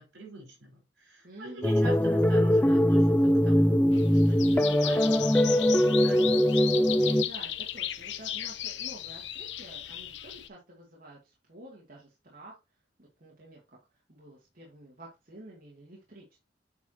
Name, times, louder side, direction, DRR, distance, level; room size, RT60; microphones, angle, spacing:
voice 1, 0.0-6.5, right 1 dB, 75° right, 5.0 m, -45 dB
voice 2, 1.2-1.9 7.2-12.6 13.0-16.4, right 1 dB, 55° right, 2.5 m, -49 dB
sound 1, 1.6-7.2, equal, 10° left, 0.4 m, -22 dB
sound 2, 3.9-10.5, left 11 dB, 80° left, 0.7 m, -36 dB
9.2 x 4.9 x 3.0 m
head